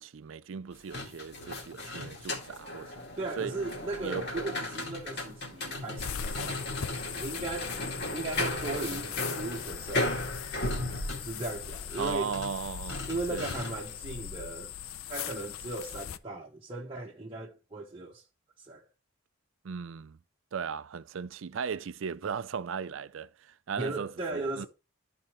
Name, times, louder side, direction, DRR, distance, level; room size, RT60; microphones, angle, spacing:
voice 1, 0.0-3.0 3.4-3.5 4.0-4.4 12.0-13.4 19.6-20.2 20.5-24.7, right 6 dB, 65° right, 0.4 m, -37 dB
sound 1, 0.7-14.0, left 1 dB, 50° left, 2.1 m, -36 dB
voice 2, 3.2-6.6 7.2-7.8 8.1-10.3 11.1-12.4 13.1-14.7 15.1-18.2 18.6-18.9 23.8-24.7, right 2 dB, 25° right, 1.1 m, -37 dB
sound 2, 6.0-16.2, left 8 dB, 85° left, 0.6 m, -40 dB
13.0 x 4.3 x 3.0 m
head